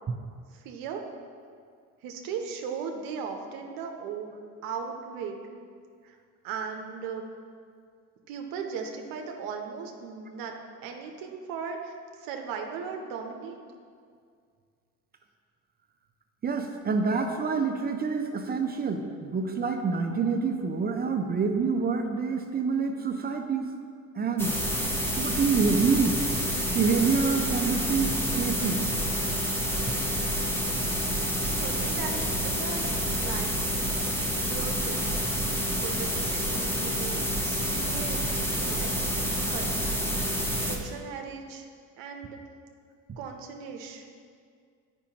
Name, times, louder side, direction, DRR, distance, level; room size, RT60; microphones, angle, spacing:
voice 1, 0.5-1.0 2.0-4.3 4.6-5.4 6.0-6.2 6.4-7.3 8.3-10.6 10.8-13.6 31.4-33.6 34.0-34.2 34.5-35.1 35.7-38.2 38.6-39.7 40.6-41.7 42.0-42.4 43.2-44.0, right 6 dB, 80° right, 3 dB, 0.8 m, -37 dB
voice 2, 16.4-23.7 24.2-24.6 25.2-26.2 26.7-28.8, right 5 dB, 30° right, 5 dB, 0.5 m, -27 dB
sound 1, 24.4-40.8, equal, 5° left, 0.8 m, -28 dB
8.7 x 5.2 x 2.9 m, 2.1 s
cardioid pair, 105°, 34 cm